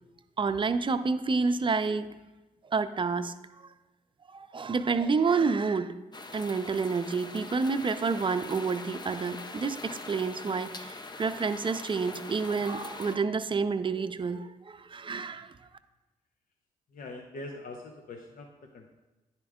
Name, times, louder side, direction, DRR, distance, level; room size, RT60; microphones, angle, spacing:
voice 1, 0.4-2.1 2.7-3.3 4.3-5.9 6.3-15.5, right 4 dB, 30° right, 9 dB, 0.5 m, -29 dB
sound 1, 6.1-13.2, left 3 dB, 25° left, 0.6 m, -43 dB
voice 2, 16.9-18.9, left 2 dB, 60° left, 3 dB, 0.8 m, -43 dB
9.7 x 4.3 x 3.6 m, 1.1 s
supercardioid pair, 55°, 16 cm